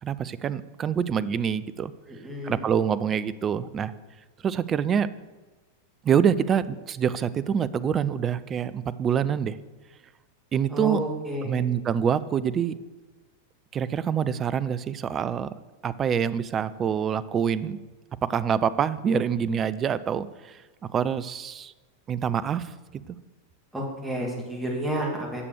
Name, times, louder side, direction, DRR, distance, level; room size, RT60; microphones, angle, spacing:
voice 1, 0.0-1.9 2.4-3.9 4.4-5.1 6.0-9.6 10.5-11.0 11.5-12.7 13.7-15.5 15.8-17.8 18.2-21.7 22.1-22.7 23.1-23.2, right 8 dB, 25° right, 16 dB, 0.4 m, -26 dB
voice 2, 2.1-2.7 10.7-11.7 23.7-25.5, right 1 dB, 10° right, -2 dB, 2.7 m, -31 dB
9.7 x 6.8 x 6.5 m, 1.2 s
figure-of-eight pair, 90°, 0 cm